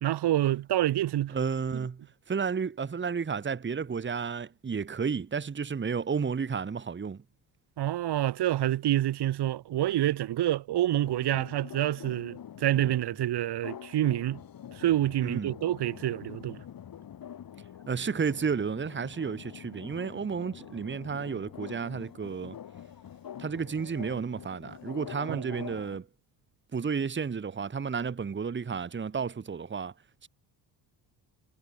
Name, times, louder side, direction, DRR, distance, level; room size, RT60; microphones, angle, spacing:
voice 1, 0.0-1.3 1.7-1.8 7.8-14.4 14.7-16.6 25.3-25.6, right 13 dB, 65° right, 1.7 m, -27 dB
voice 2, 1.3-7.2 15.2-15.5 17.9-22.5 23.4-26.1 26.7-29.9 30.2-30.3, right 6 dB, 25° right, 1.5 m, -32 dB
sound 1, 11.0-26.0, left 9 dB, 55° left, 2.5 m, -45 dB
cardioid pair, 90°, 42 cm